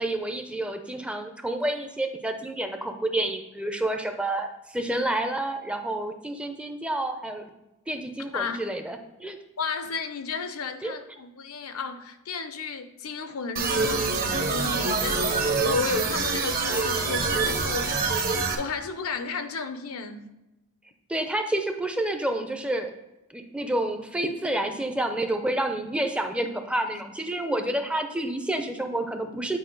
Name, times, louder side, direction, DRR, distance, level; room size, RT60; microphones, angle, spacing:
voice 1, 0.0-7.4 7.9-9.4 10.8-10.9 21.1-22.9 23.3-29.6, right 1 dB, 5° right, 6 dB, 0.5 m, -29 dB
voice 2, 9.6-20.3 26.9-27.0, left 4 dB, 75° left, 9 dB, 0.7 m, -33 dB
sound 1, 13.6-18.6, right 4 dB, 45° right, 1.0 m, -25 dB
9.1 x 4.8 x 3.8 m, 0.96 s
head